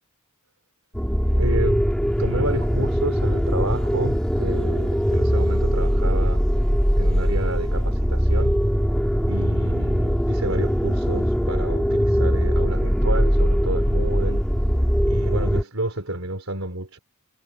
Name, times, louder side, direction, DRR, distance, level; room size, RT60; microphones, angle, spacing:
sound 1, 0.9-15.6, equal, 5° left, 3.1 m, -21 dB
voice 1, 1.3-1.9 2.2-6.5 7.0-8.6 9.2-14.5 15.0-17.0, right 2 dB, 70° right, 3.9 m, -30 dB
head